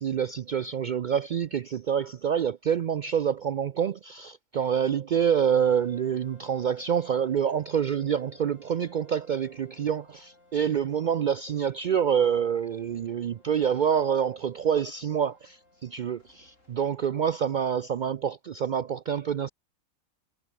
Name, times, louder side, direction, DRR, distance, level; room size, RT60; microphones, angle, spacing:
voice 1, 0.0-19.5, right 8 dB, 80° right, 0.4 m, -27 dB
sound 1, 5.4-17.0, left 2 dB, 65° left, 7.0 m, -58 dB
omnidirectional pair, 1.4 m